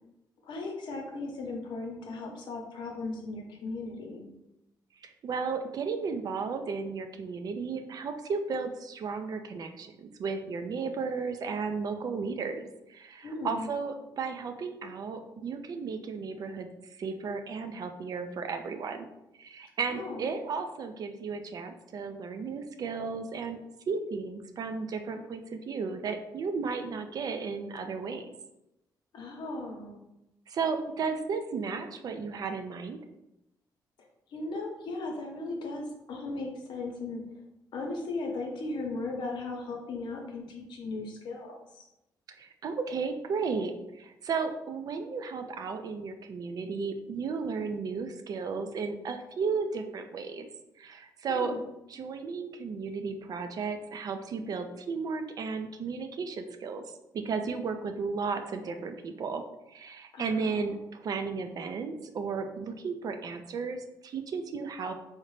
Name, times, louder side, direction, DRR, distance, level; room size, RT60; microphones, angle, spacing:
voice 1, 0.4-4.3 13.2-13.7 19.9-20.3 29.1-30.0 34.3-37.2 37.7-41.9 51.3-51.6 60.1-60.8, left 3 dB, 75° left, 1 dB, 0.7 m, -37 dB
voice 2, 5.0-16.7 17.0-19.1 19.4-23.6 23.9-28.3 30.5-33.0 42.4-50.5 50.8-51.5 51.9-56.8 57.1-59.4 59.7-64.9, right 5 dB, 55° right, 7 dB, 0.4 m, -34 dB
3.7 x 2.1 x 3.1 m, 0.89 s
cardioid pair, 100°, 8 cm